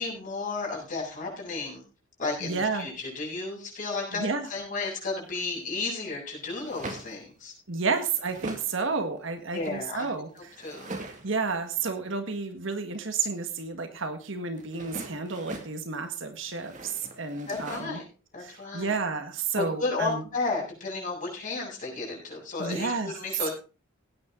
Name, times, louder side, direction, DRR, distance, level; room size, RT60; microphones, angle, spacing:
voice 1, 0.0-1.8 2.2-4.2 4.5-7.5 9.5-10.1 10.3-10.9 17.5-18.0 18.3-18.9 19.6-23.5, left 3 dB, 40° left, -3 dB, 7.6 m, -33 dB
voice 2, 2.4-2.9 4.1-4.5 7.7-10.5 11.2-18.0 18.4-20.2 22.6-23.1, right 4 dB, 60° right, 7 dB, 1.8 m, -31 dB
sound 1, 5.1-5.6 6.5-7.3 7.8-8.8 9.2-11.5 14.5-15.8 16.4-17.9, right 2 dB, 35° right, 2.4 m, -42 dB
17.5 x 9.5 x 3.9 m, 0.35 s
head